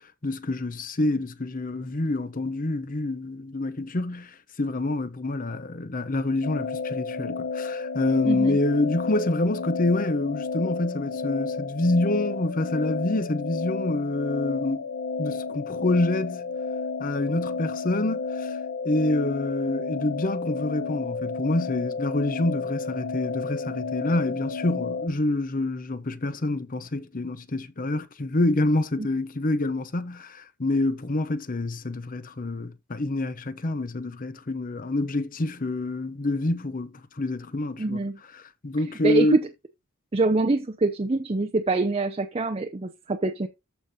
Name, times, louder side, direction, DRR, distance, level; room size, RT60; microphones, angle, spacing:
voice 1, 0.2-14.9 15.2-16.5 17.0-18.6 18.8-38.0 38.6-39.4, left 2 dB, 40° left, 0.8 m, -27 dB
sound 1, 6.4-25.1, left 4 dB, 85° left, 0.9 m, -32 dB
voice 2, 8.2-8.6 29.0-29.1 37.8-38.2 39.0-39.5 40.1-43.5, right 2 dB, 25° right, 0.6 m, -24 dB
14.0 x 5.1 x 2.7 m
head